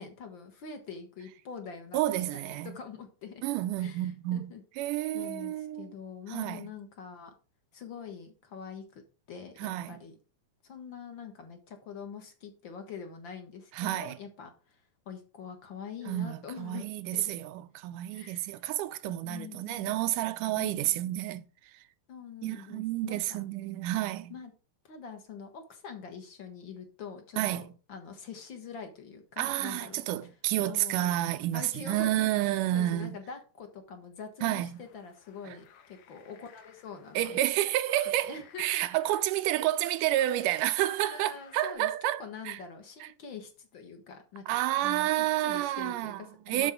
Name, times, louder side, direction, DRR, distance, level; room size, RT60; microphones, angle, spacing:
voice 1, 0.0-3.4 3.8-4.6 5.1-7.3 7.7-9.0 9.3-10.1 10.6-17.4 18.1-18.6 19.2-20.0 20.5-21.0 22.1-23.4 24.3-24.5 24.8-30.3 30.6-31.1 31.5-37.4 38.3-38.8 41.0-41.9 42.2-46.7, left 6 dB, 50° left, 1.5 m, -44 dB
voice 2, 1.9-2.8 3.4-5.9 6.3-6.6 9.6-10.0 13.7-14.2 16.1-21.4 22.4-24.3 27.4-27.7 29.4-33.2 34.4-34.8 35.5-35.6 37.2-42.6 43.0-43.1 44.5-46.7, right 14 dB, 85° right, 2.2 m, -30 dB
sound 1, 34.7-41.8, left 9 dB, 70° left, 2.4 m, -56 dB
12.0 x 4.6 x 3.6 m
omnidirectional pair, 3.8 m